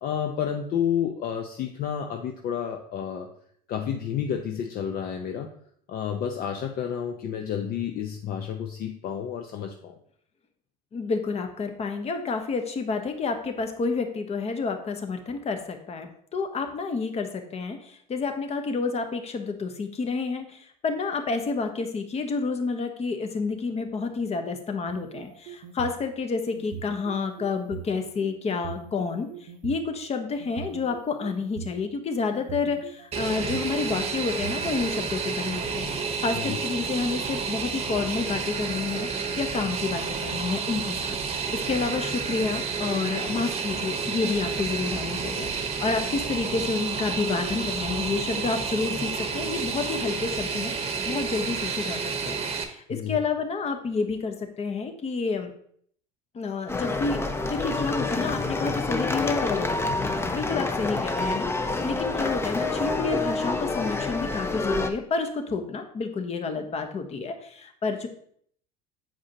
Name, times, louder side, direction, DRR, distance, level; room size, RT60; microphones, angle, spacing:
voice 1, 0.0-3.3 3.7-5.5 5.9-10.0 36.4-36.6 52.9-53.2, left 8 dB, 50° left, 4 dB, 0.7 m, -30 dB
voice 2, 10.9-29.3 29.6-52.4 52.6-55.5 56.3-61.5 61.8-68.1, left 4 dB, 30° left, 6 dB, 1.0 m, -29 dB
sound 1, 24.9-26.0 26.6-27.9 28.5-29.8 30.4-31.8 32.3-33.7 34.2-34.9, right 10 dB, 65° right, 0.6 m, -40 dB
Fixed-wing aircraft airplane, 33.1-52.6, right 5 dB, 30° right, 0.9 m, -30 dB
sound 2, 56.7-64.9, left 3 dB, 10° left, 0.6 m, -28 dB
7.4 x 4.8 x 2.8 m, 0.63 s
hypercardioid pair, 80°, 20 cm